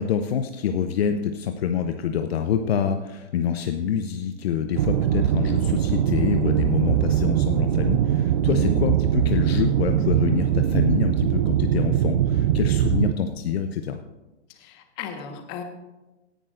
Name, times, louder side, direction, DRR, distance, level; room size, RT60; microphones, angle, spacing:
voice 1, 0.0-14.0, left 8 dB, 60° left, 7 dB, 0.8 m, -26 dB
sound 1, 4.7-13.1, right 11 dB, 40° right, 0.5 m, -21 dB
voice 2, 14.5-15.6, left 8 dB, 30° left, 5 dB, 1.5 m, -35 dB
17.5 x 10.5 x 2.6 m, 1.1 s
hypercardioid pair, 130°, 35 cm